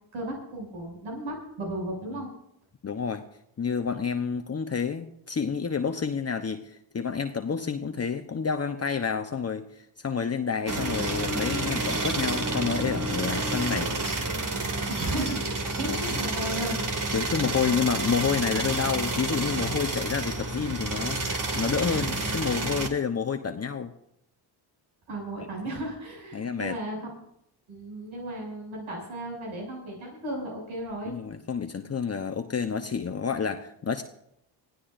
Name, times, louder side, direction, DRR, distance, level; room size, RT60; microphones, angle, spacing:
voice 1, 0.1-2.3 14.9-16.8 25.1-27.2 27.7-31.1, right 1 dB, 75° right, -1 dB, 7.1 m, -35 dB
voice 2, 2.8-3.2 3.6-13.9 15.8-16.2 17.1-23.9 26.3-26.8 31.1-34.0, left 6 dB, 30° left, 6 dB, 1.0 m, -29 dB
sound 1, 10.7-22.9, right 2 dB, 40° right, 2.4 m, -29 dB
24.0 x 16.0 x 2.6 m, 0.78 s
supercardioid pair, 60°, 48 cm